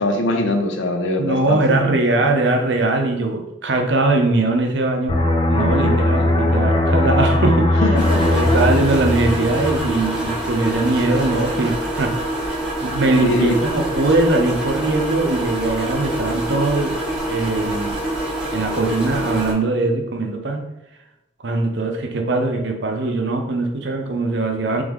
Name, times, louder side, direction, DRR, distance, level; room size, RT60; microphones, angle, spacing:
voice 1, 0.0-1.8 7.8-8.2 11.6-11.7 13.1-13.6, left 1 dB, 75° left, 4 dB, 0.6 m, -22 dB
voice 2, 1.2-5.2 5.5-7.8 8.3-12.1 12.8-16.9 17.3-18.0 18.5-20.6 21.4-24.8, right 2 dB, 60° right, 4 dB, 0.6 m, -21 dB
sound 1, 5.1-10.5 10.8-11.0, left 1 dB, 25° left, 0.5 m, -19 dB
sound 2, 8.0-19.5, right 1 dB, 5° right, 0.9 m, -25 dB
3.6 x 3.4 x 3.5 m, 0.89 s
head